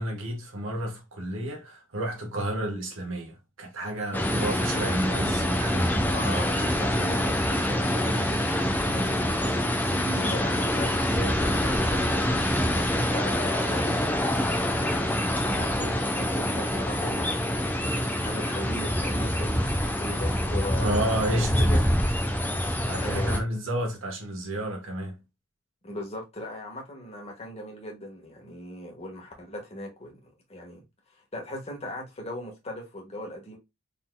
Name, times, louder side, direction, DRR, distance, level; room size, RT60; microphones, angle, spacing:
voice 1, 0.0-6.1 8.8-9.2 20.8-21.5 22.9-25.2, right 1 dB, 75° right, 1.4 m, -31 dB
sound 1, 4.1-23.4, equal, 10° left, 0.7 m, -26 dB
voice 2, 6.1-8.5 9.9-12.0 12.8-17.6 18.2-21.9 23.0-23.4 25.8-30.8 31.3-33.6, left 1 dB, 30° left, 1.5 m, -38 dB
4.2 x 4.0 x 2.2 m
head